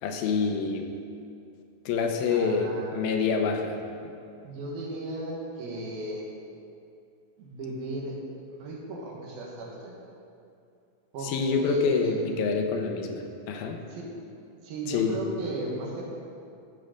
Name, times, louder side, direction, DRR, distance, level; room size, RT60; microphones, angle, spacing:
voice 1, 0.0-0.8 1.9-4.1 11.2-13.8 14.9-15.2, left 5 dB, 85° left, 4 dB, 2.7 m, -27 dB
voice 2, 2.3-3.0 4.4-6.3 7.4-8.1 8.5-10.0 11.1-12.2 13.9-14.1 14.6-16.0, right 2 dB, 80° right, -2 dB, 3.4 m, -36 dB
13.5 x 7.7 x 5.2 m, 2.5 s
omnidirectional pair, 4.1 m